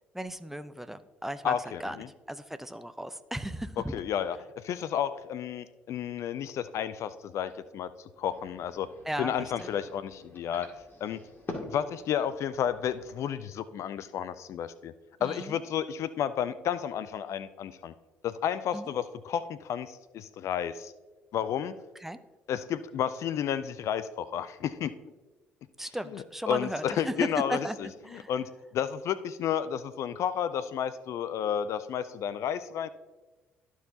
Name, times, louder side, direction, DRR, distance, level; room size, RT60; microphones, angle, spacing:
voice 1, 0.1-1.5 1.8-2.0 2.3-3.9 9.1-9.3 9.6-9.7 15.2-15.5 18.7-18.9 22.0-22.2 25.8-27.8 28.0-28.3, right 1 dB, 5° right, 11 dB, 0.7 m, -35 dB
voice 2, 1.4-2.1 3.8-7.9 8.2-8.9 9.2-10.7 11.0-11.2 11.6-14.9 15.2-17.9 18.2-20.9 21.3-21.7 22.5-24.9 26.1-32.9, left 9 dB, 55° left, 14 dB, 0.4 m, -32 dB
sound 1, 8.1-13.2, left 2 dB, 35° left, 2.3 m, -46 dB
13.5 x 4.6 x 2.8 m, 1.2 s
hypercardioid pair, 50°, 6 cm